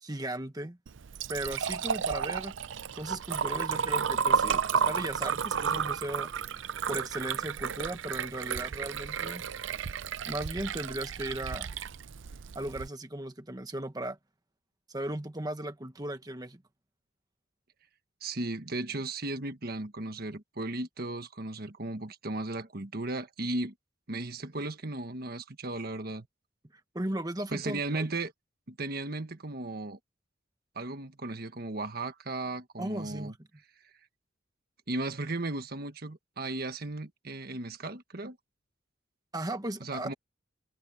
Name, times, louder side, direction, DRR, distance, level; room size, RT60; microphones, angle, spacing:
voice 1, 0.0-0.8 1.3-2.5 2.9-6.3 6.9-9.4 10.3-11.7 12.5-14.2 14.9-16.6 26.9-28.1 32.8-33.4 39.3-40.1, right 1 dB, 20° right, 1.3 m, -36 dB
Liquid, 0.9-12.9, right 7 dB, 70° right, 0.5 m, -32 dB
voice 2, 18.2-23.7 24.1-26.3 27.5-28.3 28.7-30.0 30.7-33.3 34.9-38.4 39.8-40.1, right 2 dB, 50° right, 1.5 m, -36 dB
head